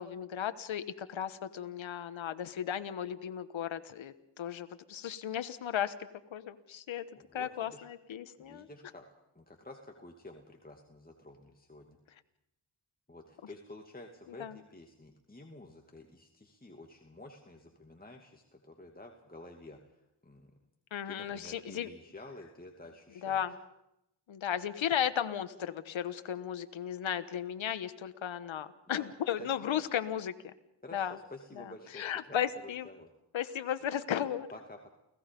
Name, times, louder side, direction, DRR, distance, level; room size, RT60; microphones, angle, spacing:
voice 1, 0.0-5.9 6.3-7.0 7.3-8.7 14.4-14.5 20.9-21.9 23.2-23.5 24.3-30.3 30.9-31.1 32.0-32.9 33.3-34.5, left 9 dB, 80° left, 11 dB, 1.3 m, -35 dB
voice 2, 7.1-7.9 8.4-9.0 9.3-12.0 13.1-20.6 21.1-23.4 28.8-29.1 29.4-29.9 30.8-33.1 34.5-34.9, left 2 dB, 20° left, 2 dB, 2.5 m, -51 dB
29.5 x 17.5 x 5.3 m, 0.85 s
cardioid pair, 55°, 46 cm